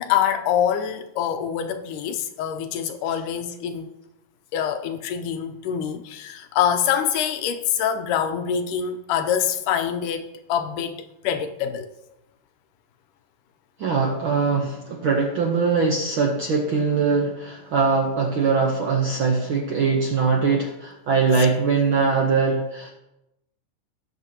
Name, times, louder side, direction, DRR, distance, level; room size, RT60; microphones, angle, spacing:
voice 1, 0.0-3.9 4.5-11.9 21.4-21.5, left 8 dB, 85° left, 2.3 m, -25 dB
voice 2, 13.8-22.9, right 4 dB, 70° right, 1.2 m, -22 dB
18.5 x 6.7 x 2.9 m
omnidirectional pair, 3.6 m